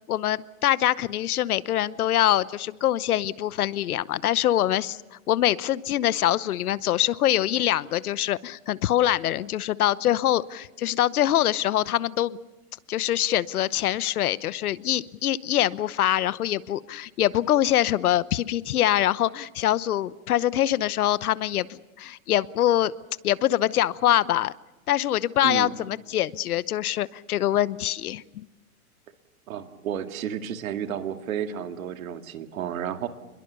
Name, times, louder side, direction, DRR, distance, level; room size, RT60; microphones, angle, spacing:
voice 1, 0.1-12.4 12.9-22.9 23.2-24.5 24.9-28.5, left 12 dB, 75° left, 18 dB, 1.0 m, -24 dB
voice 2, 29.5-33.1, right 9 dB, 65° right, 7 dB, 2.2 m, -32 dB
29.0 x 22.0 x 6.9 m, 1.0 s
hypercardioid pair, 155°, 44 cm